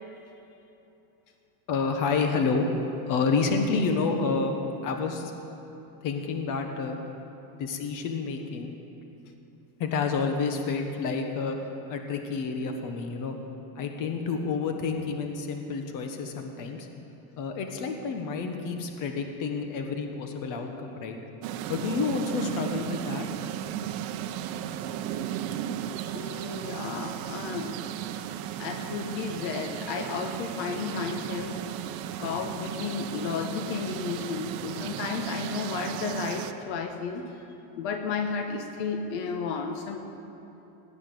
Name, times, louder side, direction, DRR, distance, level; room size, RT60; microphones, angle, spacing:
voice 1, 1.7-2.7 3.1-4.6 4.8-5.3 6.0-7.0 7.4-8.8 9.8-11.6 11.9-13.4 13.7-16.9 17.4-21.2 21.7-23.3, left 4 dB, 45° left, 4 dB, 1.5 m, -29 dB
sound 1, 21.4-36.5, right 10 dB, 55° right, 0.8 m, -35 dB
voice 2, 26.1-27.8 28.6-31.6 32.2-37.3 37.8-40.0, left 5 dB, 75° left, 5 dB, 1.4 m, -33 dB
17.5 x 10.0 x 7.0 m, 2.9 s
cardioid pair, 160°, 43 cm